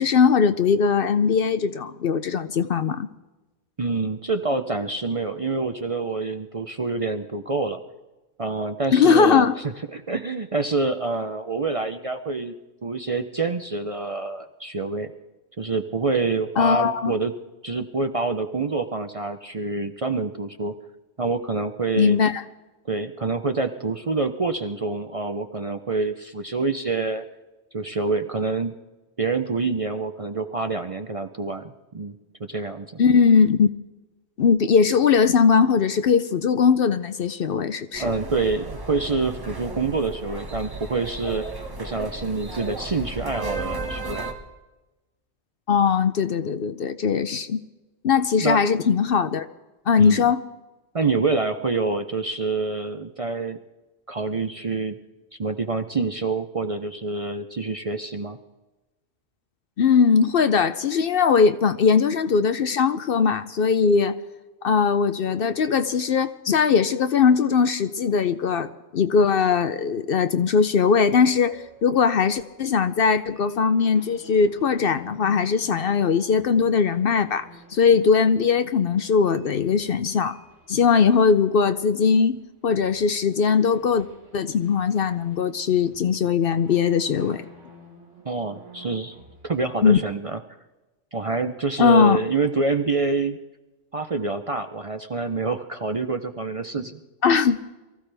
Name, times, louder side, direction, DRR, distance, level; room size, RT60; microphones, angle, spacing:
voice 1, 0.0-3.1 8.9-9.5 16.6-17.1 22.0-22.4 33.0-33.7 34.4-38.1 45.7-47.6 48.0-49.5 49.9-50.4 59.8-64.2 64.6-80.4 80.7-84.1 84.3-87.4 89.8-90.0 91.8-92.2 97.2-97.6, left 6 dB, 60° left, 11 dB, 0.7 m, -20 dB
voice 2, 3.8-7.8 8.4-12.5 12.8-15.1 15.6-17.3 17.6-20.7 21.2-22.2 22.9-27.2 27.7-28.8 29.2-33.0 38.0-41.4 41.8-44.3 48.4-48.6 50.0-50.2 50.9-53.6 54.1-55.0 55.4-58.4 88.2-89.2 89.4-90.4 91.1-93.5 93.9-97.0, right 3 dB, 35° right, 7 dB, 0.6 m, -26 dB
sound 1, 37.9-44.3, right 2 dB, 20° right, 1.2 m, -34 dB
sound 2, 71.3-82.3 82.7-89.7, right 1 dB, 75° right, 2.3 m, -50 dB
23.0 x 15.0 x 3.4 m, 1.1 s
omnidirectional pair, 1.2 m